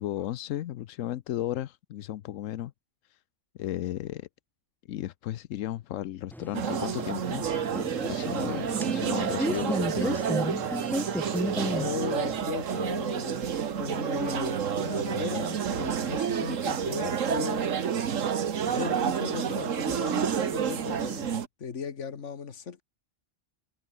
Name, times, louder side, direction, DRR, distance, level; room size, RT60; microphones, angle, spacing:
voice 1, 0.0-2.7 3.0-3.2 3.6-4.3 4.9-7.7 8.0-10.2, left 13 dB, 85° left, 1.0 m, -34 dB
sound 1, 6.3-12.4, equal, ahead, 1.7 m, -34 dB
sound 2, 6.5-21.5, right 7 dB, 80° right, 1.6 m, -29 dB
voice 2, 11.6-17.8 18.7-22.8, left 6 dB, 70° left, 1.8 m, -37 dB
omnidirectional pair, 1.3 m